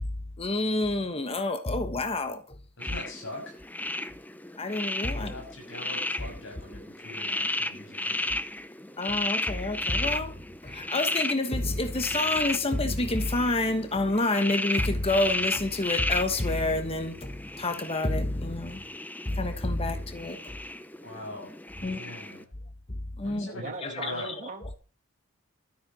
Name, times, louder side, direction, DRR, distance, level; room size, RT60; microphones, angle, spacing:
voice 1, 0.4-2.6 4.6-5.3 9.0-10.3 10.6-18.8 19.2-20.6 21.8-22.0 23.2-23.5 23.8-24.1, left 2 dB, 25° left, 1.3 m, -28 dB
voice 2, 2.8-3.6 5.1-8.4 21.0-22.5 23.2-24.3, left 1 dB, 60° left, 6.5 m, -42 dB
sound 1, 2.8-22.4, left 2 dB, 10° left, 0.6 m, -34 dB
voice 3, 23.5-24.8, right 3 dB, 35° right, 2.0 m, -39 dB
13.0 x 8.7 x 6.3 m
head